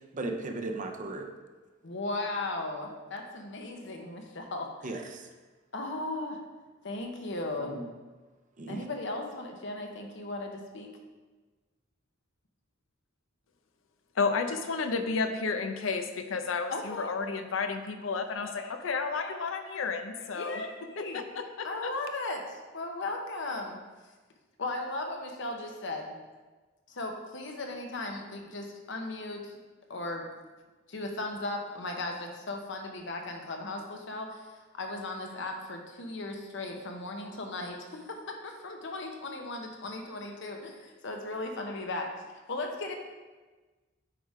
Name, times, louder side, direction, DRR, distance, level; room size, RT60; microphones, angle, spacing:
voice 1, 0.1-1.3 4.8-5.3 7.7-7.9 8.6-8.8, right 2 dB, 40° right, 4 dB, 0.7 m, -36 dB
voice 2, 1.8-4.9 5.7-6.4 6.8-7.7 8.7-10.9 16.7-17.1 18.3-18.8 19.1-21.2 21.6-23.8 24.6-26.2 26.9-29.6 29.9-30.2 30.9-42.1 42.5-42.9, left 2 dB, 65° left, 3 dB, 0.9 m, -37 dB
voice 3, 14.2-20.6 21.0-21.9, left 4 dB, 85° left, 7 dB, 0.6 m, -32 dB
8.4 x 3.6 x 4.8 m, 1.3 s
head